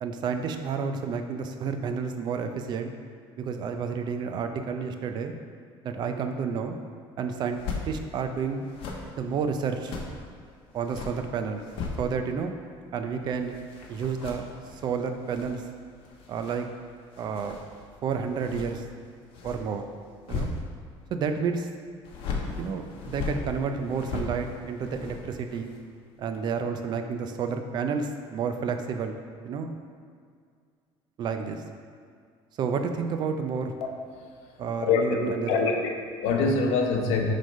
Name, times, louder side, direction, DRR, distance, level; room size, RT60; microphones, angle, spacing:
voice 1, 0.0-2.9 3.4-5.3 5.8-6.8 7.2-8.7 9.2-9.9 10.7-11.6 12.0-12.5 12.9-13.5 13.9-14.5 14.8-15.6 16.3-16.7 17.2-17.6 18.0-18.8 19.4-19.8 20.3-20.5 21.1-21.7 22.6-25.7 26.2-29.1 29.4-29.7 31.2-31.6 32.6-33.7 34.6-35.7, right 6 dB, 40° right, 6 dB, 0.5 m, -30 dB
sound 1, 7.4-7.9 8.6-10.2 10.7-12.4 12.7-21.1 22.0-25.9 26.2-26.4, left 4 dB, 55° left, 1.0 m, -38 dB
voice 2, 34.8-37.3, left 4 dB, 80° left, 1 dB, 1.0 m, -25 dB
7.7 x 3.3 x 5.3 m, 2.1 s
cardioid pair, 160°, 11 cm